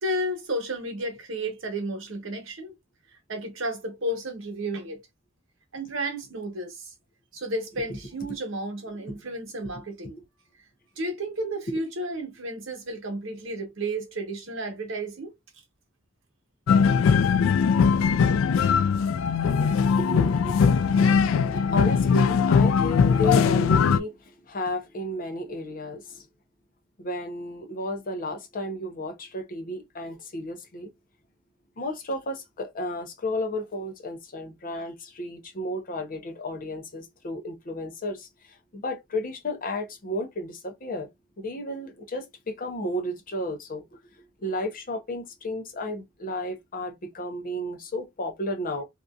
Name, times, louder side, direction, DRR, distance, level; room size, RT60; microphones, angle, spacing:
voice 1, 0.0-2.7 3.3-5.0 5.7-6.9 7.3-10.2 11.0-15.3, right 1 dB, 75° right, 1.1 m, -32 dB
sound 1, 16.7-24.0, left 6 dB, 90° left, 0.3 m, -20 dB
voice 2, 20.0-20.5 21.5-26.3 27.0-30.9 31.8-41.1 41.4-44.0 44.4-48.8, left 1 dB, 45° left, 0.7 m, -33 dB
2.9 x 2.5 x 2.3 m
head